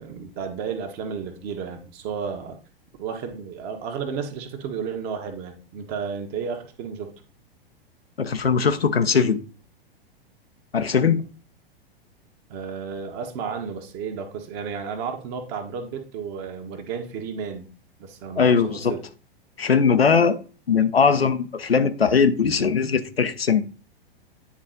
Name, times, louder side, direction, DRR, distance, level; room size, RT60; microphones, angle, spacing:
voice 1, 0.0-2.6 3.0-7.1 12.5-17.7 18.0-19.0, right 6 dB, 35° right, 1.4 m, -32 dB
voice 2, 8.2-9.4 10.7-11.2 18.4-19.0 19.6-20.4 20.7-23.6, left 6 dB, 80° left, 0.9 m, -20 dB
9.8 x 4.0 x 3.9 m
figure-of-eight pair, 100°, 30 cm